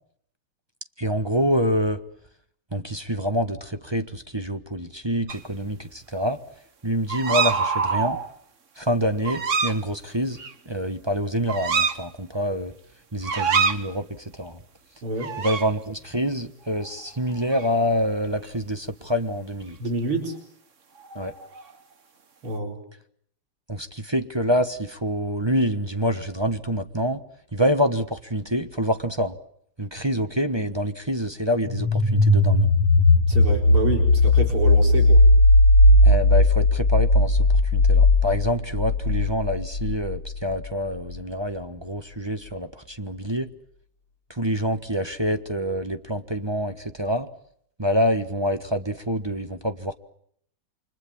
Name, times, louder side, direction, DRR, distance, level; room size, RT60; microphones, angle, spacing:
voice 1, 1.0-2.0 2.7-6.4 6.8-8.2 8.8-10.4 10.7-12.7 13.1-14.6 15.4-19.8 21.1-21.3 23.7-27.2 27.5-29.3 29.8-32.7 36.0-37.5 37.7-43.5 44.4-47.3 47.8-49.9, equal, 15° right, 9 dB, 1.0 m, -26 dB
sound 1, 5.3-5.4 7.1-8.3 9.2-9.8 10.4-10.5 11.5-12.0 13.2-13.8 15.2-15.7 16.8-17.1 17.4-17.7 21.0-21.7, right 5 dB, 40° right, 1.5 m, -25 dB
voice 2, 15.0-15.3 19.8-20.3 22.4-22.8 33.3-35.2, right 2 dB, 85° right, 3 dB, 5.2 m, -27 dB
sound 2, 31.7-40.4, left 2 dB, 60° left, 3.4 m, -17 dB
29.5 x 25.5 x 7.3 m, 0.66 s
omnidirectional pair, 2.3 m